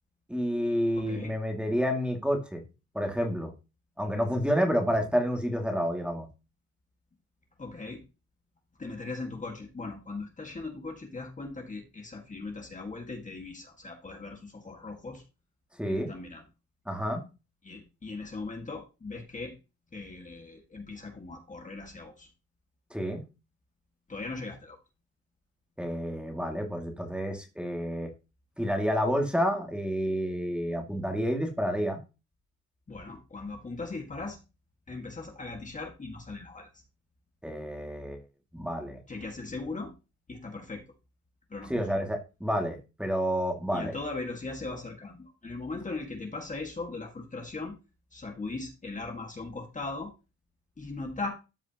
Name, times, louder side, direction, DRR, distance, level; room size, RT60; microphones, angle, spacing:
voice 1, 0.3-2.6 2.9-3.5 4.0-6.3 15.8-16.1 16.9-17.2 22.9-23.2 25.8-28.1 28.6-32.0 37.4-38.2 38.5-39.0 41.7-44.0, equal, 5° right, 2 dB, 2.3 m, -29 dB
voice 2, 1.0-1.3 7.6-8.1 8.8-15.2 15.9-16.4 17.6-19.5 19.9-22.3 24.1-24.8 32.9-34.4 34.9-36.8 39.1-39.9 40.3-40.8 41.5-42.0 43.7-47.7 48.1-50.1 50.8-51.3, left 3 dB, 25° left, 2 dB, 1.8 m, -39 dB
13.5 x 4.9 x 2.9 m, 0.28 s
cardioid pair, 90°, 30 cm